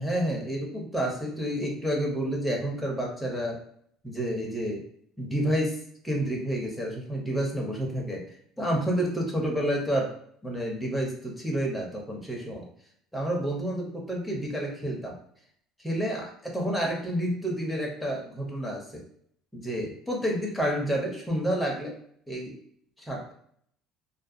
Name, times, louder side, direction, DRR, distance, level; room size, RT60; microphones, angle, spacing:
voice 1, 0.0-3.6 4.0-4.8 5.2-5.8 6.0-8.2 8.6-10.1 10.4-12.7 13.1-15.2 15.8-19.0 19.5-21.9 22.3-22.6 23.0-23.3, equal, ahead, -2 dB, 0.6 m, -29 dB
2.4 x 2.2 x 2.5 m, 0.64 s
cardioid pair, 140°, 0 cm